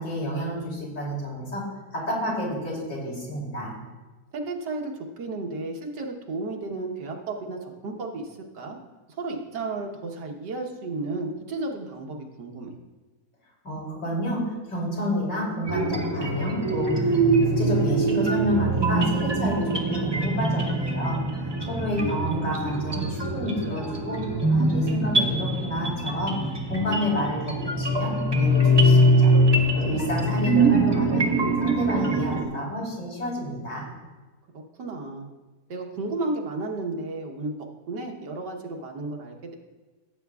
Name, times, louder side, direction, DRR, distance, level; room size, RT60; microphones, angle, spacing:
voice 1, 0.0-1.6 1.9-3.7 13.6-17.3 17.6-21.2 21.7-24.2 24.5-26.4 26.7-29.3 29.8-31.3 31.6-33.9, equal, 85° left, -4 dB, 3.7 m, -29 dB
voice 2, 4.3-8.8 9.2-12.8 21.4-21.8 34.8-35.3 35.7-37.5 37.9-39.4, right 2 dB, 85° right, 2 dB, 1.8 m, -33 dB
sound 1, 15.7-32.4, right 1 dB, 20° right, 0.9 m, -23 dB
16.5 x 8.4 x 2.4 m, 1.2 s
omnidirectional pair, 1.8 m